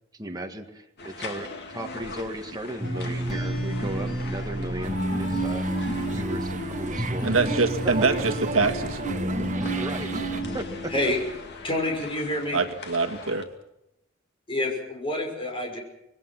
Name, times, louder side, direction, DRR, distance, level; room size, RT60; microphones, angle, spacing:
voice 1, 0.2-1.5 1.7-7.4 9.7-11.1, right 1 dB, 20° right, 3 dB, 1.9 m, -36 dB
sound 1, 1.0-13.4, left 2 dB, 55° left, 2.5 m, -41 dB
sound 2, 2.8-11.5, right 1 dB, ahead, 6.9 m, -30 dB
sound 3, 4.8-10.4, right 3 dB, 35° right, 1.0 m, -35 dB
voice 2, 7.2-9.0 12.5-13.5, right 4 dB, 70° right, 6 dB, 1.7 m, -24 dB
voice 3, 11.6-12.6 14.5-15.8, left 1 dB, 25° left, 1 dB, 5.8 m, -27 dB
26.0 x 20.5 x 6.1 m, 0.86 s
head